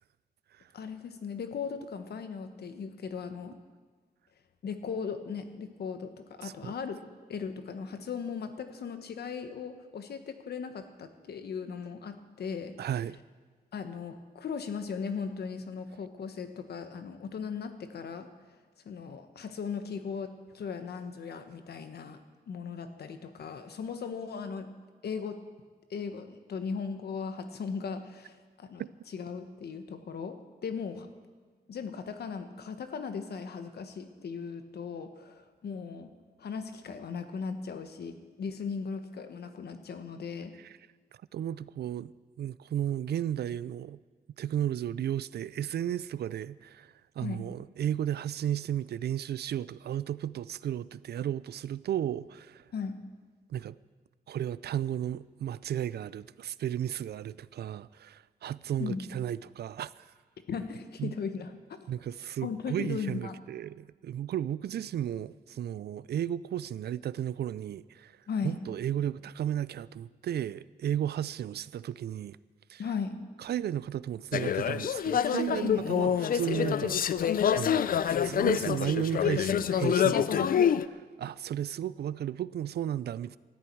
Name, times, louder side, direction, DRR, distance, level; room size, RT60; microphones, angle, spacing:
voice 1, 0.7-3.6 4.6-7.0 7.3-12.7 13.7-18.3 18.8-22.2 22.5-24.7 25.0-25.4 25.9-30.4 30.6-31.1 31.7-36.1 36.4-40.5 47.2-47.4 52.7-53.0 58.8-59.0 60.5-61.9 62.4-63.4 68.3-68.5 72.8-73.1 75.6-75.9, left 6 dB, 80° left, 1.3 m, -37 dB
voice 2, 6.4-6.7 12.8-13.2 28.8-28.9 41.3-42.1 42.4-44.0 44.4-52.6 53.5-53.8 54.3-60.1 61.0-61.1 61.9-68.2 68.4-72.4 72.7-72.8 73.4-77.0 77.5-83.4, right 10 dB, 85° right, 0.4 m, -34 dB
sound 1, 74.3-80.9, left 8 dB, 60° left, 0.5 m, -26 dB
19.5 x 13.5 x 4.6 m
wide cardioid pair, 150°, 16 cm